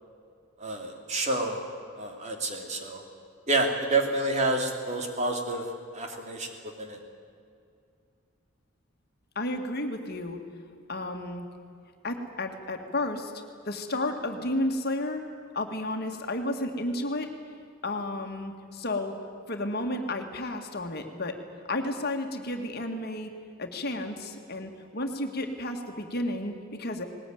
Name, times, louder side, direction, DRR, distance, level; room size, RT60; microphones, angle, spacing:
voice 1, 0.6-1.6 2.0-3.0 3.5-5.6 5.9-6.5 6.8-7.0, right 2 dB, 35° right, 3 dB, 2.7 m, -28 dB
voice 2, 9.4-10.4 10.9-11.5 12.0-13.3 13.7-15.3 15.5-17.3 17.8-19.1 19.5-21.4 21.7-23.3 23.6-27.1, left 1 dB, 50° left, 4 dB, 1.9 m, -32 dB
20.0 x 19.5 x 9.3 m, 2.3 s
head